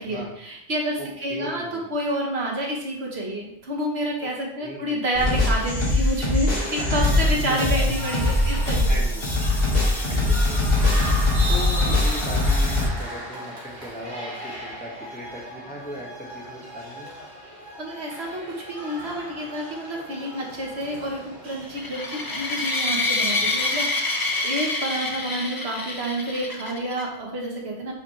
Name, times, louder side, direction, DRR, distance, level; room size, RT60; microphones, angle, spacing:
voice 1, 0.0-9.0 10.3-10.4 17.8-18.4 18.7-27.9, right 1 dB, 60° right, -1 dB, 1.8 m, -29 dB
voice 2, 1.0-1.9 4.2-4.3 4.6-5.4 6.8-6.9 8.9-9.3 10.1-11.1 11.5-17.1, equal, 5° left, -5 dB, 1.9 m, -38 dB
sound 1, 5.1-12.9, left 2 dB, 55° left, 2.2 m, -22 dB
sound 2, 6.8-24.4, equal, 40° right, 1.7 m, -36 dB
sound 3, 21.7-27.0, left 2 dB, 25° left, 0.5 m, -27 dB
7.2 x 4.9 x 3.3 m, 0.75 s
omnidirectional pair, 1.2 m